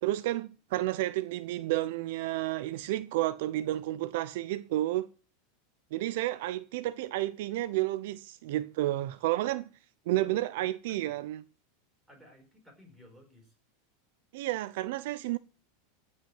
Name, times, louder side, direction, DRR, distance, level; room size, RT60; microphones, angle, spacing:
voice 1, 0.0-5.1 5.9-9.7 10.1-11.4 14.3-15.4, right 15 dB, 60° right, 0.6 m, -31 dB
voice 2, 10.1-11.1 12.1-13.5, equal, 5° right, 4.8 m, -54 dB
15.5 x 5.6 x 7.8 m
supercardioid pair, 160°, 0 cm